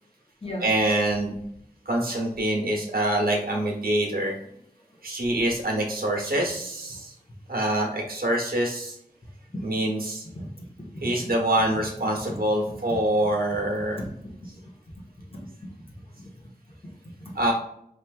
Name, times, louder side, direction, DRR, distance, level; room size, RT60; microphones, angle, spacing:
voice 1, 0.6-1.3 1.9-4.4 5.0-7.1 7.5-9.0 9.6-10.3 11.0-14.0 17.3-17.5, right 1 dB, 75° right, 0 dB, 1.1 m, -25 dB
voice 2, 10.3-11.3 12.3-12.4 12.7-13.0 13.9-15.0 15.3-15.4 16.1-16.2 17.2-17.3, equal, 35° left, -2 dB, 1.2 m, -38 dB
4.3 x 3.3 x 2.4 m, 0.75 s
wide cardioid pair, 50°, 16 cm